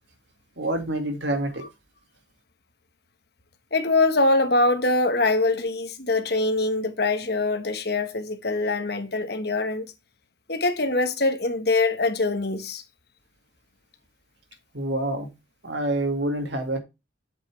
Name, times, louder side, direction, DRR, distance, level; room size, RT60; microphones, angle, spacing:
voice 1, 0.6-1.6 14.7-15.3 15.6-16.8, right 1 dB, 65° right, 2.2 m, -27 dB
voice 2, 3.7-9.8 10.5-12.8, left 2 dB, 55° left, 1.4 m, -23 dB
7.9 x 7.7 x 3.4 m
head